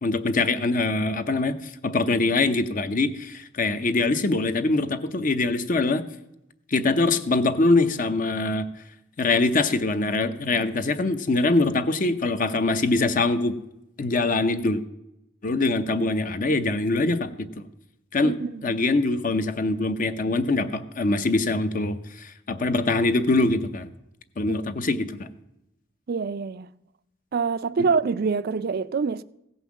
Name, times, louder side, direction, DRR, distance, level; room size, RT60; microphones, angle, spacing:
voice 1, 0.0-6.0 6.7-8.7 9.2-13.6 14.0-14.8 15.4-17.6 18.1-18.4 18.6-23.9 24.4-25.3, left 2 dB, 45° left, 0.7 m, -23 dB
voice 2, 18.2-18.6 24.5-24.6 26.1-26.7 27.3-29.2, right 5 dB, 50° right, 0.4 m, -25 dB
16.0 x 5.6 x 7.2 m
head